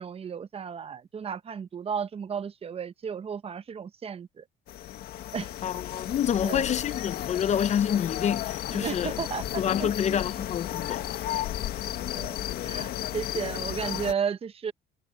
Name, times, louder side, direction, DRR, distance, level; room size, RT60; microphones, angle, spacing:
voice 1, 0.0-4.4 5.3-5.5 6.4-6.6 8.7-10.2 12.2-12.4 12.6-14.7, right 7 dB, 35° right, 0.9 m, -34 dB
sound 1, 4.7-14.1, left 12 dB, 70° left, 1.6 m, -33 dB
voice 2, 5.6-9.2 9.6-11.2, left 9 dB, 45° left, 0.6 m, -28 dB
cardioid pair, 110°, 17 cm